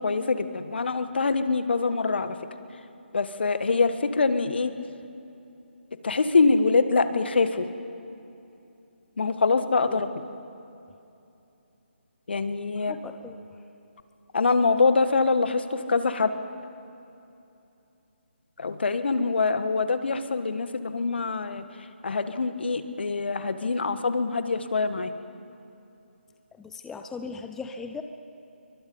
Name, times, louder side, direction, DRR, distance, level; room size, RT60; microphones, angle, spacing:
voice 1, 0.0-2.4 3.1-4.7 6.0-7.7 9.2-10.2 12.3-12.9 14.3-16.3 18.6-21.6 22.0-25.1, left 4 dB, 60° left, 10 dB, 1.6 m, -24 dB
voice 2, 12.7-13.5 26.6-28.0, left 4 dB, 5° left, 6 dB, 0.7 m, -38 dB
28.0 x 24.0 x 5.5 m, 2.8 s
figure-of-eight pair, 150°, 6 cm